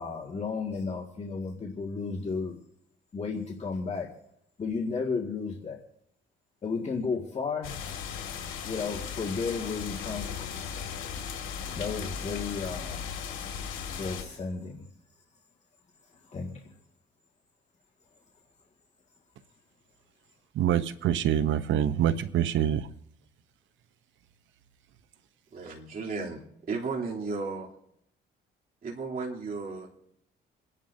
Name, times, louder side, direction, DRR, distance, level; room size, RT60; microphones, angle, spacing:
voice 1, 0.0-2.6 3.1-4.1 4.6-5.8 6.6-7.7 8.6-10.5 11.7-13.2 13.9-14.9 16.2-16.7, left 4 dB, 35° left, 1.9 m, -33 dB
sound 1, 7.6-14.2, left 7 dB, 85° left, 2.0 m, -37 dB
voice 2, 20.6-22.9, right 10 dB, 75° right, 0.8 m, -25 dB
voice 3, 25.5-26.4 26.7-27.7 28.8-29.9, right 4 dB, 45° right, 3.0 m, -34 dB
29.0 x 11.0 x 2.7 m
cardioid pair, 90°, 20 cm